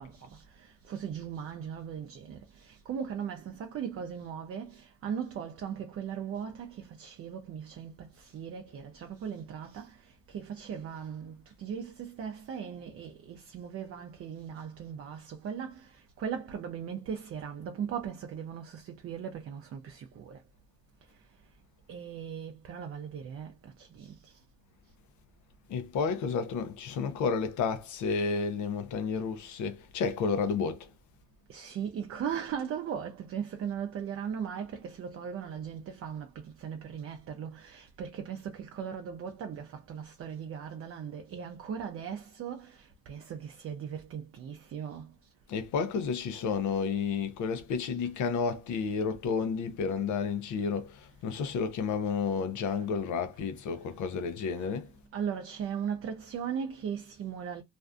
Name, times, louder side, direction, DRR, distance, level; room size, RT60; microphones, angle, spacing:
voice 1, 0.0-20.4 21.1-21.2 21.9-24.4 31.5-45.2 54.5-54.7 55.1-57.6, right 8 dB, 50° right, 0.4 m, -38 dB
voice 2, 25.7-30.9 45.5-54.9, left 5 dB, 75° left, 0.6 m, -31 dB
2.5 x 2.2 x 2.4 m
cardioid pair, 90°, 30 cm